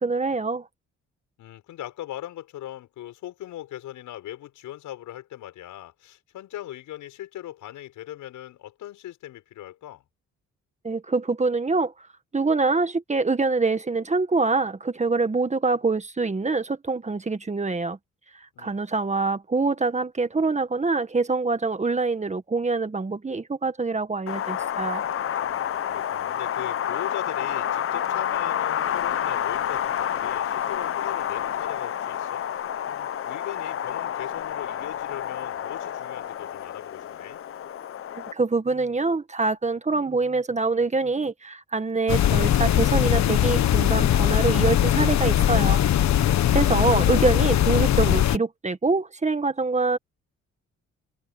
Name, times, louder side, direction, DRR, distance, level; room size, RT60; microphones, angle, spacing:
voice 1, 0.0-0.7 10.8-11.9 12.3-18.0 18.3-25.1 38.2-45.8 46.2-50.0, right 3 dB, 25° right, 1.7 m, -25 dB
voice 2, 1.4-10.0 18.5-18.8 25.4-32.4 32.9-37.4, left 13 dB, 85° left, 6.9 m, -39 dB
Wind, 24.3-38.3, left 9 dB, 45° left, 0.8 m, -29 dB
sound 1, 42.1-48.4, left 11 dB, 65° left, 1.4 m, -20 dB
cardioid pair, 90°, 30 cm